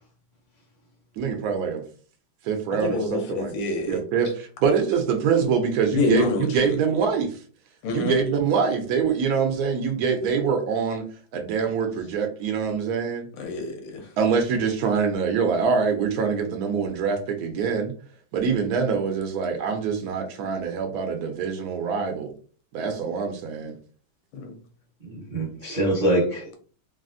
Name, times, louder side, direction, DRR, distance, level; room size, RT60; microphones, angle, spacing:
voice 1, 1.2-1.8 2.4-3.5 3.9-7.4 7.9-11.1 11.3-13.3 14.2-17.9 18.3-22.3 22.7-23.8, right 6 dB, 90° right, 0.8 m, -24 dB
voice 2, 2.8-4.0 5.9-6.5 7.8-8.1 13.4-14.1 24.4-24.6, left 4 dB, 75° left, 1.4 m, -27 dB
voice 3, 25.0-26.5, right 1 dB, 60° right, 0.5 m, -24 dB
3.3 x 2.4 x 2.5 m
omnidirectional pair, 2.2 m